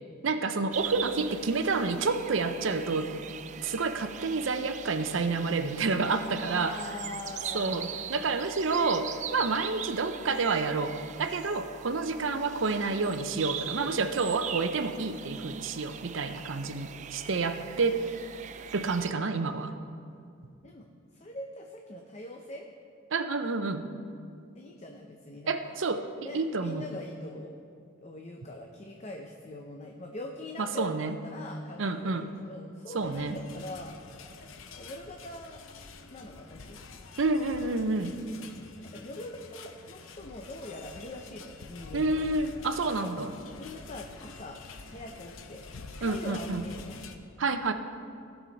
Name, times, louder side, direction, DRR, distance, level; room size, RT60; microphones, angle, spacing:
voice 1, 0.2-3.1 3.6-6.7 7.5-18.0 18.7-19.7 23.1-23.9 25.5-26.0 26.3-26.9 30.6-31.2 31.8-32.3 32.9-33.4 37.2-38.1 41.9-43.3 46.0-46.6 47.4-47.7, right 3 dB, 75° right, 9 dB, 0.6 m, -29 dB
sound 1, 0.7-19.1, right 8 dB, 40° right, 0.3 m, -41 dB
voice 2, 6.4-8.0 20.6-20.9 21.1-22.7 24.5-25.8 26.2-27.6 28.0-34.0 34.8-35.6 36.1-36.8 38.8-42.3 42.9-43.2 43.6-44.6 44.9-47.1, left 1 dB, 35° left, 2 dB, 0.6 m, -43 dB
sound 2, 33.0-47.2, left 4 dB, 85° left, 0.7 m, -47 dB
16.0 x 6.2 x 4.0 m, 2.5 s
head